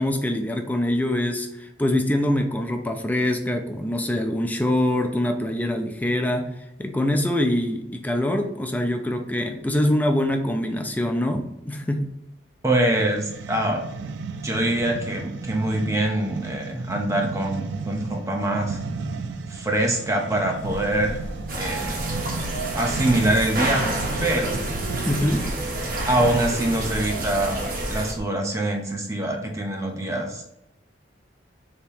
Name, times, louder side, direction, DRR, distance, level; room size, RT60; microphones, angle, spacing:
voice 1, 0.0-6.5 6.8-12.1 25.1-25.4, left 1 dB, 10° left, 4 dB, 0.3 m, -24 dB
voice 2, 12.6-13.8 14.4-18.8 19.5-21.2 21.6-22.0 22.7-23.8 24.2-24.7 26.1-30.5, right 1 dB, 15° right, 1 dB, 0.7 m, -24 dB
sound 1, 12.9-26.7, right 4 dB, 80° right, 0.4 m, -35 dB
sound 2, 20.5-28.2, equal, 35° left, 1.1 m, -36 dB
sound 3, 21.5-28.1, right 2 dB, 50° right, 0.9 m, -29 dB
3.4 x 2.9 x 4.5 m, 0.86 s
head